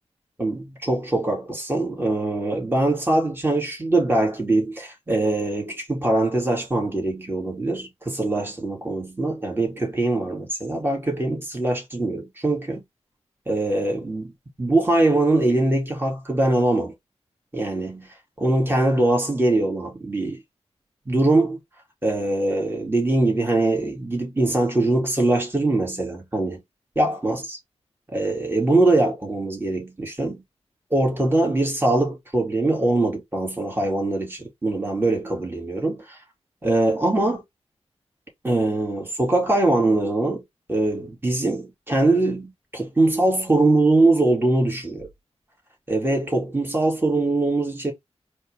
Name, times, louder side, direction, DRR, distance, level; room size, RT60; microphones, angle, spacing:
voice 1, 0.4-12.8 13.5-14.3 14.6-16.9 17.5-18.1 18.4-20.4 21.1-21.6 22.0-26.6 27.0-27.6 28.1-30.4 30.9-36.2 36.6-37.4 38.4-40.4 40.7-45.1 45.9-47.9, right 2 dB, 20° right, 2.4 m, -22 dB
4.3 x 3.2 x 3.4 m
cardioid pair, 55°, 12 cm